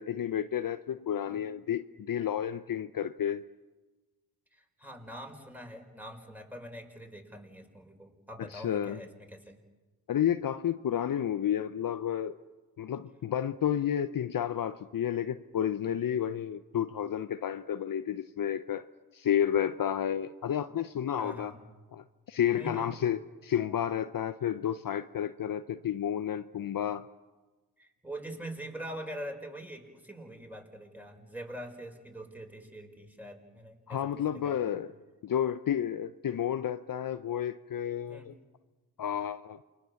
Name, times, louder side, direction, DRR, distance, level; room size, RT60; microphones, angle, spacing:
voice 1, 0.0-3.5 8.4-9.0 10.1-12.4 12.8-18.8 19.1-21.5 21.9-27.1 33.9-34.9 35.2-38.3 39.0-39.6, left 9 dB, 55° left, 11 dB, 0.9 m, -31 dB
voice 2, 4.5-9.6 21.2-21.6 22.5-23.0 27.8-34.7 38.0-38.3, right 1 dB, 5° right, 3 dB, 5.6 m, -44 dB
28.5 x 22.5 x 7.2 m, 1.3 s
supercardioid pair, 45°, 41 cm